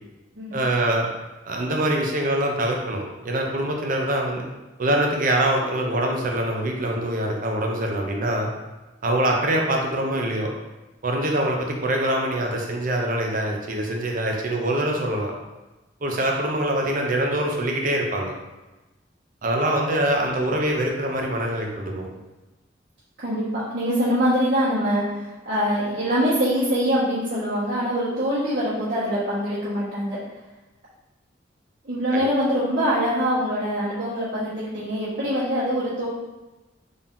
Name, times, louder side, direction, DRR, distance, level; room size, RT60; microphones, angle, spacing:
voice 1, 0.5-1.1 1.5-4.4 4.8-8.5 9.0-10.5 11.0-15.3 16.0-18.3 19.4-22.1 32.1-32.2, right 1 dB, 50° right, 1 dB, 0.7 m, -24 dB
voice 2, 23.2-30.2 31.8-36.1, equal, 75° right, -12 dB, 1.4 m, -24 dB
3.8 x 2.9 x 3.7 m, 1.1 s
head